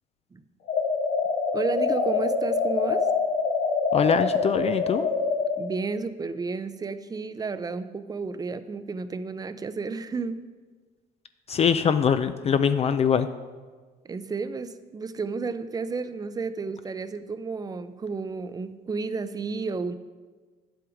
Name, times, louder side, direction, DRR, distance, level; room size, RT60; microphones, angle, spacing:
sound 1, 0.7-5.6, left 4 dB, 90° left, 2.8 m, -25 dB
voice 1, 1.5-3.1 5.6-10.4 14.0-19.9, right 4 dB, 20° right, 12 dB, 0.6 m, -32 dB
voice 2, 3.9-5.1 11.5-13.3, left 7 dB, 40° left, 10 dB, 0.5 m, -23 dB
10.0 x 7.8 x 4.9 m, 1.4 s
cardioid pair, 110°, 17 cm